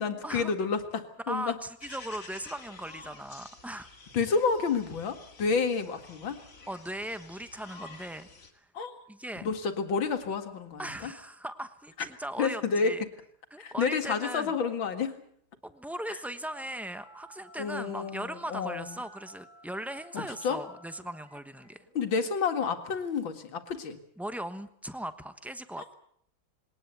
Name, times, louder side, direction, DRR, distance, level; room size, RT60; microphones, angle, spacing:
voice 1, 0.0-1.6 4.1-6.4 8.7-8.9 9.4-11.1 12.4-13.0 13.6-15.1 17.6-18.9 20.1-20.6 21.9-24.0, left 5 dB, 75° left, 7 dB, 2.7 m, -30 dB
voice 2, 1.3-3.9 6.7-8.3 8.5-8.7 9.1-9.5 10.8-13.0 13.5-14.5 15.6-21.8 24.2-25.9, right 1 dB, ahead, 10 dB, 0.6 m, -38 dB
sound 1, 1.8-8.5, left 4 dB, 40° left, 2.7 m, -50 dB
Telephone, 16.5-23.4, right 1 dB, 40° right, 7.4 m, -55 dB
21.5 x 18.5 x 8.1 m, 0.65 s
omnidirectional pair, 2.1 m